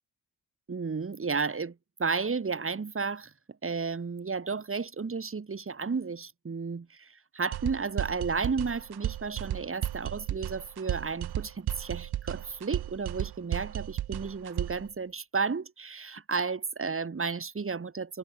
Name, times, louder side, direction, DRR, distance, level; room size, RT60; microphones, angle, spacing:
voice 1, 0.7-3.3 3.6-18.2, right 5 dB, 30° right, 2.4 m, -33 dB
sound 1, 7.5-14.9, right 12 dB, 65° right, 1.1 m, -34 dB
supercardioid pair, 65°, 41 cm